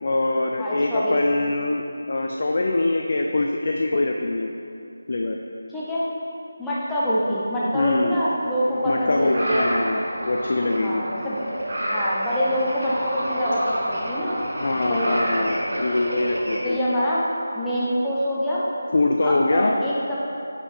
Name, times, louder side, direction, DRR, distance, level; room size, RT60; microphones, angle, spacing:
voice 1, 0.0-4.5 5.1-5.4 7.7-8.2 8.9-11.0 14.6-16.8 18.9-19.7, left 2 dB, 50° left, 1 dB, 0.4 m, -23 dB
voice 2, 0.6-1.2 5.7-6.1 6.6-9.7 10.8-11.4 11.9-14.4 14.9-15.5 16.6-17.3 17.5-18.6 19.2-20.2, equal, 5° left, -11 dB, 0.7 m, -25 dB
sound 1, 8.6-16.6, equal, 55° right, 1.4 m, -29 dB
5.8 x 5.3 x 4.1 m, 2.7 s
figure-of-eight pair, 160°, 0 cm